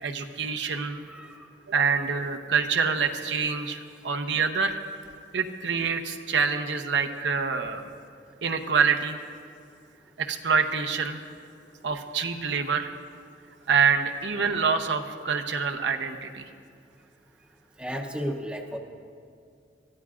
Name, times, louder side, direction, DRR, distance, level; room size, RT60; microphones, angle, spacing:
voice 1, 0.0-1.1 1.7-4.8 5.3-7.8 8.4-9.2 10.2-11.2 11.8-12.9 13.7-16.4, right 5 dB, 80° right, 5 dB, 0.8 m, -26 dB
voice 2, 17.8-18.8, equal, 5° right, 1 dB, 0.7 m, -33 dB
23.0 x 14.0 x 2.5 m, 2.3 s
head